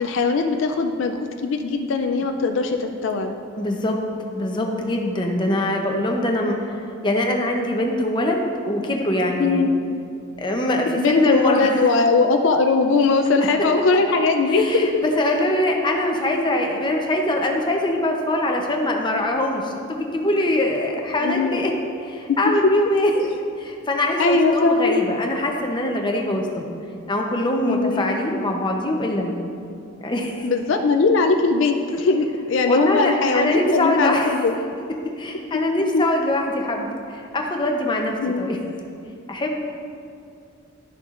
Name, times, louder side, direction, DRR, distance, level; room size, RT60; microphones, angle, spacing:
voice 1, 0.0-3.3 9.4-9.7 10.9-15.0 21.2-21.6 22.3-22.4 23.2-23.3 24.2-25.0 27.6-28.1 30.4-34.6 35.9-36.0 38.2-38.5, left 3 dB, 60° left, 5 dB, 0.4 m, -20 dB
voice 2, 3.6-4.0 4.3-6.8 7.0-9.7 10.4-11.7 14.5-21.7 22.0-23.1 23.6-26.7 27.1-29.4 30.0-30.5 32.6-34.3 35.2-38.6 39.3-39.6, left 1 dB, 20° left, 1 dB, 0.7 m, -23 dB
11.5 x 6.7 x 2.5 m, 2.5 s
head